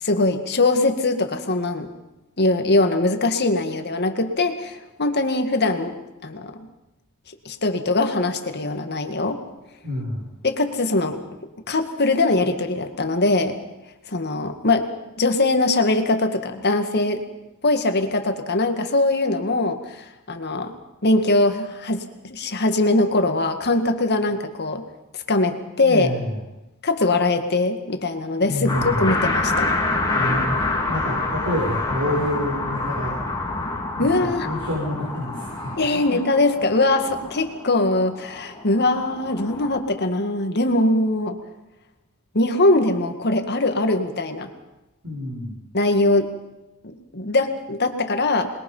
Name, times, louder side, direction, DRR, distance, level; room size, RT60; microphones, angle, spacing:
voice 1, 0.0-1.9 2.4-6.0 6.2-6.5 7.5-9.4 10.4-11.2 11.7-13.6 14.1-14.9 15.2-17.3 17.6-20.7 21.0-24.8 25.3-26.1 26.8-29.7 34.0-34.5 35.8-41.4 42.3-44.5 45.7-46.3 46.8-48.5, left 2 dB, 50° left, 7 dB, 2.0 m, -21 dB
voice 2, 9.8-10.3 25.8-26.4 28.5-29.1 30.2-30.6 30.9-33.2 33.5-33.6 33.9-36.0 45.0-45.6, left 1 dB, 65° right, -4 dB, 7.0 m, -28 dB
sound 1, 28.7-39.8, left 2 dB, 20° left, 3.5 m, -27 dB
27.0 x 21.5 x 5.7 m, 0.98 s
head